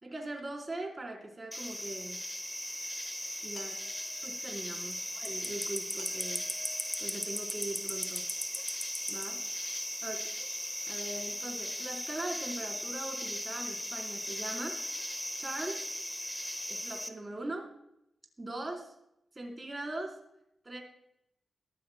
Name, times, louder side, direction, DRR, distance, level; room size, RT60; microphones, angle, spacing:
voice 1, 0.0-2.2 3.4-3.8 4.2-6.5 7.0-8.2 9.1-9.4 10.0-10.3 10.9-14.8 15.4-15.9 16.7-17.7 18.4-18.9 19.3-20.1 20.6-20.8, right 2 dB, 30° right, 1 dB, 3.9 m, -40 dB
sound 1, 1.5-17.1, equal, 10° left, 1.3 m, -37 dB
sound 2, 3.5-4.6 6.0-7.9, left 3 dB, 75° left, 5.7 m, -55 dB
21.5 x 14.0 x 2.2 m, 0.80 s
cardioid pair, 60°, 0 cm